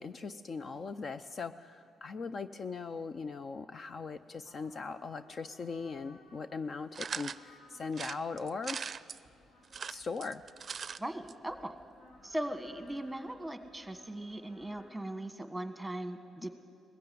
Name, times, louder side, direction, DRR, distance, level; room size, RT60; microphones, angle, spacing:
voice 1, 0.0-8.8 9.9-10.4, left 4 dB, 45° left, 12 dB, 0.6 m, -40 dB
sound 1, 4.0-14.9, left 2 dB, 65° left, 4.1 m, -61 dB
sound 2, 6.9-7.4 7.9-9.2 9.6-11.0 11.3-11.4 11.6-11.7, right 6 dB, 45° right, 0.5 m, -40 dB
voice 2, 11.0-11.7 12.2-16.5, right 1 dB, 5° right, 9 dB, 1.4 m, -39 dB
20.5 x 15.0 x 9.4 m, 2.4 s
cardioid pair, 90°, 0 cm